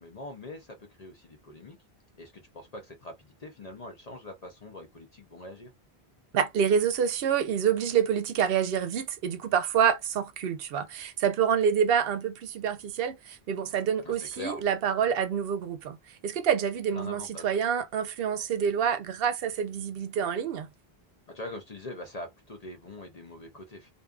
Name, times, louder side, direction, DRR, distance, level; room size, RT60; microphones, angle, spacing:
voice 1, 0.0-1.8 2.2-5.7 14.0-14.6 16.9-17.5 21.3-23.9, left 2 dB, 45° left, 0.6 m, -43 dB
voice 2, 6.3-16.0 16.2-20.7, right 8 dB, 70° right, 0.8 m, -27 dB
2.6 x 2.4 x 2.2 m
omnidirectional pair, 1.0 m